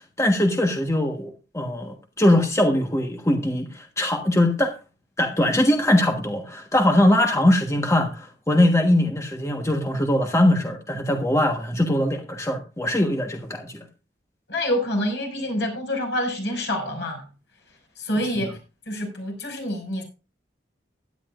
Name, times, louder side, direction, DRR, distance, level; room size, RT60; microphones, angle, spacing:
voice 1, 0.2-4.7 5.2-13.8, left 1 dB, 15° left, 1.3 m, -21 dB
voice 2, 14.5-17.3 18.0-18.6 18.9-20.0, left 1 dB, 70° left, 6.0 m, -27 dB
16.5 x 11.0 x 2.5 m
head